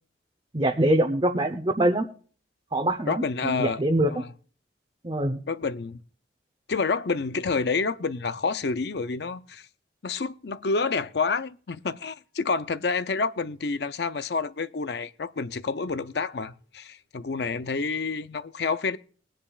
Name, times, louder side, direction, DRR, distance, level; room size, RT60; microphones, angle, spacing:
voice 1, 0.5-2.1 2.7-4.1 5.0-5.4, right 1 dB, 25° right, 0.8 m, -24 dB
voice 2, 3.1-3.8 4.1-4.3 5.5-6.0 6.7-9.7 10.0-19.0, left 4 dB, 60° left, 0.6 m, -28 dB
21.0 x 10.0 x 2.4 m
head